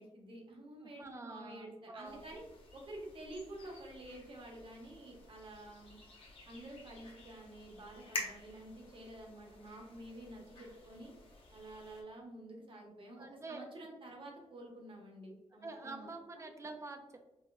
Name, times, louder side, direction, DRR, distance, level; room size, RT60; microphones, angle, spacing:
voice 1, 0.0-2.4 2.7-6.0 6.5-11.1 11.5-16.1 16.4-16.5, right 1 dB, 45° right, -1 dB, 0.9 m, -50 dB
voice 2, 0.8-2.4 13.2-13.7 15.5-17.2, right 3 dB, 25° right, 5 dB, 0.4 m, -47 dB
sound 1, 2.0-12.0, left 2 dB, 50° left, 0.8 m, -50 dB
4.2 x 2.2 x 2.3 m, 0.98 s
wide cardioid pair, 110°, 12 cm